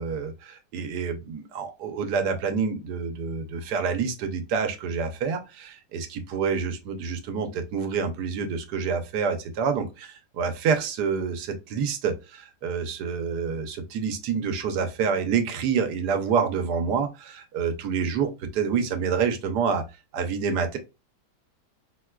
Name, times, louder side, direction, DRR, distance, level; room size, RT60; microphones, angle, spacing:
voice 1, 0.0-19.8 20.1-20.8, right 6 dB, 80° right, 1.3 m, -27 dB
4.5 x 2.2 x 2.2 m
omnidirectional pair, 1.8 m